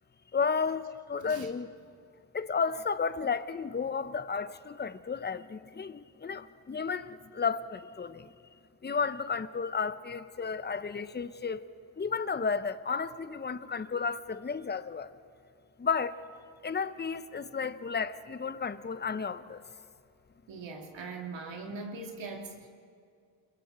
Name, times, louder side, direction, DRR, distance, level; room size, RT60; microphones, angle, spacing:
voice 1, 0.3-1.7 2.3-8.3 8.8-11.6 12.0-15.1 15.8-16.2 16.6-19.6, left 5 dB, 20° left, 1.0 m, -33 dB
voice 2, 20.5-22.7, right 3 dB, 65° right, 3.1 m, -41 dB
29.0 x 21.5 x 4.5 m
supercardioid pair, 55°, 48 cm